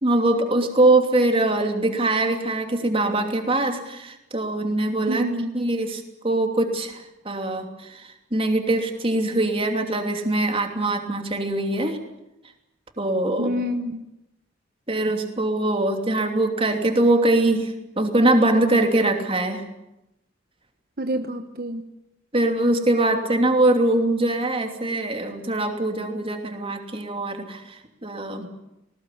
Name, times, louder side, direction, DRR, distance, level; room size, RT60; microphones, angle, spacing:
voice 1, 0.0-5.2 5.5-12.0 13.0-13.6 14.9-19.6 22.3-28.5, right 2 dB, 30° right, 5 dB, 2.9 m, -22 dB
voice 2, 5.1-5.6 13.4-14.0 21.0-21.9, equal, 50° right, 7 dB, 1.2 m, -27 dB
19.5 x 19.5 x 9.9 m, 0.89 s
head